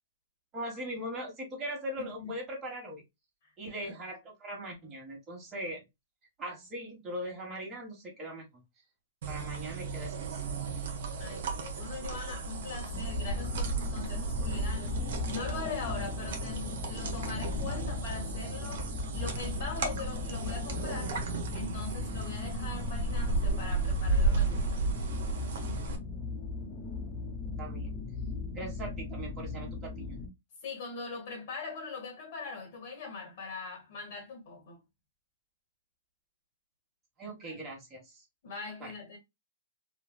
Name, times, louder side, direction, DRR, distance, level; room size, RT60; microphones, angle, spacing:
voice 1, 0.5-3.0 3.6-5.8 6.4-8.5 9.3-10.4 27.6-28.0 28.5-30.2 37.2-38.2 38.8-38.9, right 1 dB, 20° right, 1.4 m, -40 dB
voice 2, 2.0-2.3 3.8-3.9 11.2-18.9 19.1-21.2 21.5-24.9 30.6-34.8 37.5-37.6 38.4-39.2, left 4 dB, 60° left, 1.3 m, -41 dB
sound 1, 9.2-26.0, right 3 dB, 65° right, 0.8 m, -34 dB
sound 2, 12.9-30.3, left 3 dB, 35° left, 1.0 m, -38 dB
3.2 x 2.3 x 2.2 m
hypercardioid pair, 130°, 0 cm